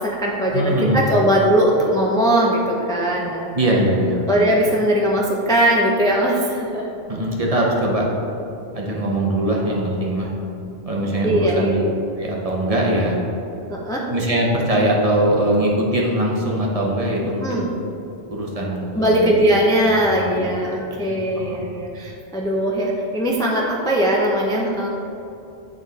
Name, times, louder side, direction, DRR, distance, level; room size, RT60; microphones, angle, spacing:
voice 1, 0.0-3.5 4.3-6.9 11.2-11.8 13.7-14.0 17.4-17.7 18.9-24.9, right 1 dB, 5° left, -2 dB, 0.4 m, -20 dB
voice 2, 0.5-1.0 3.5-4.2 7.1-8.1 8.7-10.3 10.9-11.8 12.2-13.2 14.1-17.6 18.3-19.3 20.1-20.8 21.4-21.6, right 1 dB, 35° right, -2 dB, 0.8 m, -21 dB
8.5 x 3.8 x 4.0 m, 2.8 s
omnidirectional pair, 1.1 m